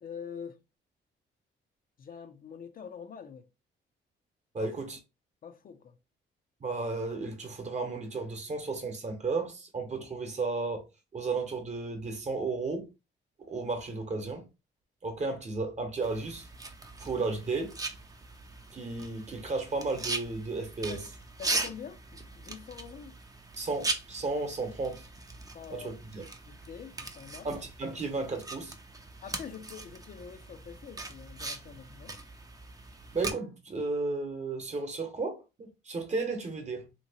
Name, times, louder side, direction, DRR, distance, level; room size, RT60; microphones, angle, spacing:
voice 1, 0.0-0.6 2.0-3.5 4.6-4.8 5.4-6.0 20.9-21.1 21.4-23.1 25.5-27.5 27.9-28.0 29.2-32.2, left 7 dB, 45° left, 0.5 m, -45 dB
voice 2, 4.5-5.0 6.6-10.8 11.1-12.9 13.5-14.4 15.0-16.5 17.0-17.7 18.7-21.0 23.6-25.1 25.7-26.2 27.4-28.7 33.1-36.9, right 3 dB, 35° right, 1.0 m, -33 dB
sound 1, 16.0-33.3, right 3 dB, 20° right, 0.6 m, -40 dB
2.8 x 2.8 x 2.7 m
cardioid pair, 90°, 20 cm